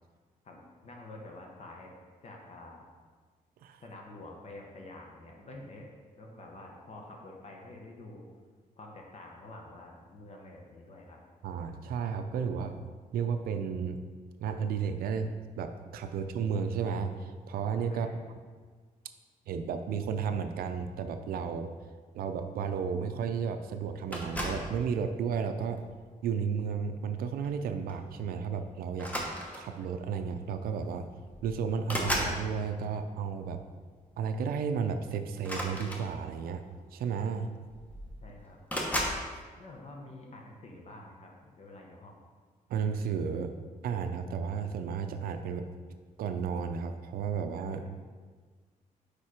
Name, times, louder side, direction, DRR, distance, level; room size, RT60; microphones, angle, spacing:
voice 1, 0.4-1.9 2.2-2.8 3.8-8.3 8.8-11.2 17.9-18.2 38.2-38.6 39.6-42.2 47.7-47.9, left 2 dB, 45° left, 0 dB, 0.9 m, -48 dB
voice 2, 11.4-12.8 13.1-14.0 14.4-18.1 19.5-21.7 22.1-25.8 26.2-29.1 29.5-31.1 31.4-33.6 34.2-36.6 36.9-37.5 42.7-43.5 43.8-45.7 46.2-47.9, right 6 dB, 85° right, 7 dB, 0.4 m, -33 dB
sound 1, 24.1-24.7 25.6-25.9 27.4-27.6 27.9-28.1 28.9-29.8 30.8-30.9 31.2-32.4 35.4-36.5 37.4-37.5 37.7-38.2 38.7-39.2, equal, 10° left, 0.9 m, -34 dB
4.9 x 4.3 x 4.8 m, 1.5 s
cardioid pair, 115°, 15 cm